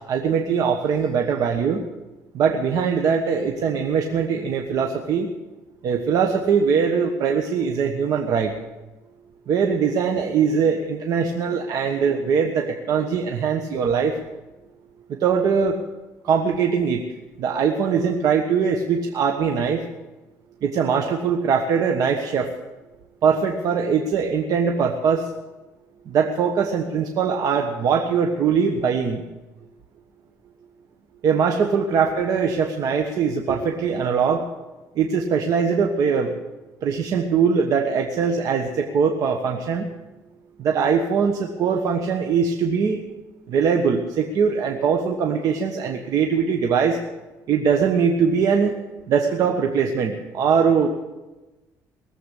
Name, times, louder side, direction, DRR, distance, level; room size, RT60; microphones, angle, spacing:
voice 1, 0.1-1.8 2.3-5.3 5.8-8.5 9.5-14.2 15.1-15.8 16.2-17.0 17.4-19.8 20.6-22.5 23.2-25.3 26.1-29.2 31.2-34.5 34.9-36.3 36.8-39.9 40.6-43.0 43.5-47.0 47.5-48.8 49.1-50.9, right 6 dB, 60° right, 3 dB, 1.3 m, -21 dB
19.5 x 7.9 x 8.3 m, 1.1 s
cardioid pair, 125°, 7 cm